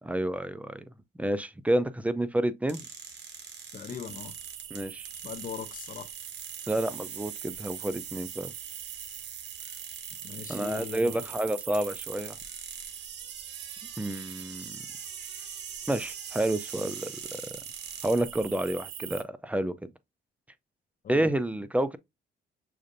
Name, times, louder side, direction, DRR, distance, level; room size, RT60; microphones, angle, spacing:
voice 1, 0.0-0.8 1.2-2.8 4.7-5.1 6.7-8.5 10.5-12.4 14.0-14.8 15.9-17.4 18.0-19.9 21.1-22.0, right 1 dB, 5° right, 0.3 m, -29 dB
sound 1, 2.7-18.2, right 6 dB, 60° right, 0.9 m, -45 dB
voice 2, 3.7-4.3 5.2-6.1 10.2-11.1 21.0-21.2, left 8 dB, 45° left, 0.5 m, -40 dB
sound 2, 4.1-19.2, right 11 dB, 80° right, 0.5 m, -43 dB
6.4 x 2.5 x 2.5 m
cardioid pair, 90°, 20 cm